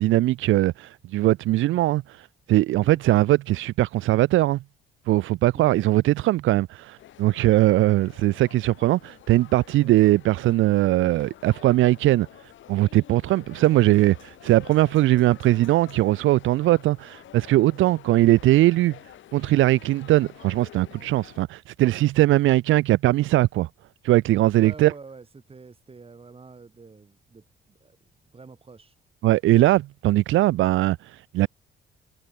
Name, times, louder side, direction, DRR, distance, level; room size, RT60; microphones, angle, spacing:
voice 1, 0.0-4.6 5.1-12.3 12.7-18.9 19.3-23.7 24.0-24.9 29.2-31.5, right 16 dB, 80° right, 0.6 m, -20 dB
sound 1, 7.0-21.4, left 12 dB, 75° left, 5.9 m, -48 dB
voice 2, 24.6-28.0 28.2-28.9, right 4 dB, 30° right, 3.6 m, -46 dB
cardioid pair, 90°, 20 cm